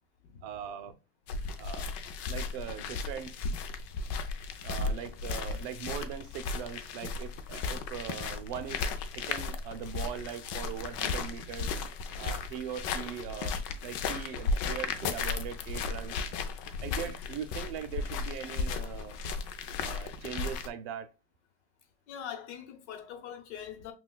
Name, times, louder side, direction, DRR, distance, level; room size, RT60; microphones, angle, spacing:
voice 1, 0.4-0.9 1.6-1.9 2.3-3.3 4.6-11.7 12.2-16.2 16.8-19.2 19.8-21.1, right 9 dB, 55° right, 0.6 m, -40 dB
sound 1, 1.3-20.7, left 4 dB, 45° left, 0.5 m, -35 dB
voice 2, 22.1-23.9, left 9 dB, 85° left, 1.0 m, -42 dB
5.7 x 2.4 x 2.2 m
supercardioid pair, 155°, 33 cm